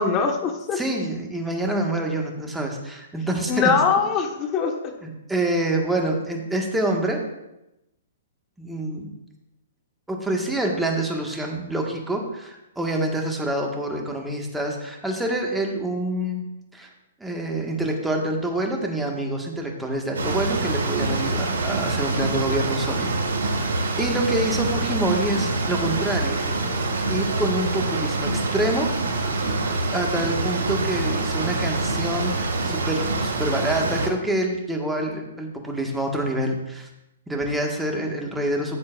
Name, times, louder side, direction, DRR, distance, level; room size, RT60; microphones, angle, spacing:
voice 1, 0.0-0.8 3.5-4.9, left 5 dB, 30° left, 4 dB, 1.3 m, -22 dB
voice 2, 0.7-3.7 5.0-7.2 8.6-9.1 10.1-16.4 16.7-16.9 17.2-26.4 27.1-28.9 29.9-36.9 37.3-38.8, right 1 dB, 5° right, 1 dB, 1.6 m, -26 dB
sound 1, 20.1-34.1, right 2 dB, 85° right, 3.0 m, -25 dB
15.0 x 7.3 x 2.5 m, 0.89 s
hypercardioid pair, 135°, 0 cm